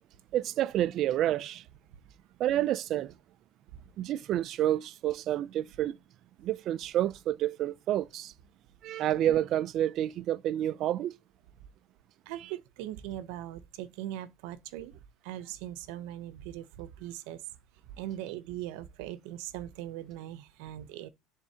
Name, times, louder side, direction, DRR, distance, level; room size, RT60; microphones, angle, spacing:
voice 1, 0.3-1.6 2.4-3.2 4.0-6.0 6.4-8.3 8.8-11.2, right 12 dB, 40° right, 0.3 m, -29 dB
voice 2, 12.3-14.9 15.2-17.4 18.0-21.1, right 13 dB, 75° right, 0.7 m, -40 dB
10.5 x 3.6 x 2.8 m
cardioid pair, 160°, 0 cm